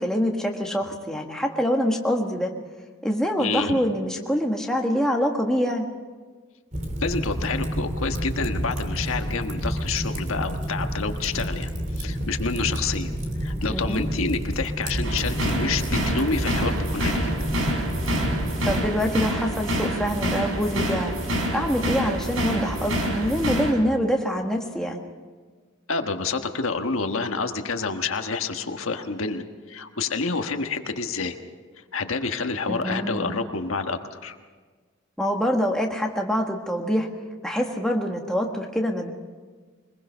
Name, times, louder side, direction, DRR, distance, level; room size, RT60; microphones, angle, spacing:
voice 1, 0.0-2.5 3.0-5.9 13.7-14.0 18.6-21.2 21.5-25.0 32.7-33.4 35.2-37.1 37.4-39.1, equal, 5° left, 1 dB, 1.5 m, -25 dB
voice 2, 3.4-3.8 7.0-13.1 13.4-17.3 25.9-31.4 31.9-34.4, left 4 dB, 85° left, 5 dB, 1.4 m, -28 dB
Fire, 6.7-18.8, equal, 35° right, 2.8 m, -29 dB
sound 1, 15.0-23.7, right 1 dB, 85° right, 3.9 m, -27 dB
23.0 x 21.0 x 5.7 m, 1.5 s
head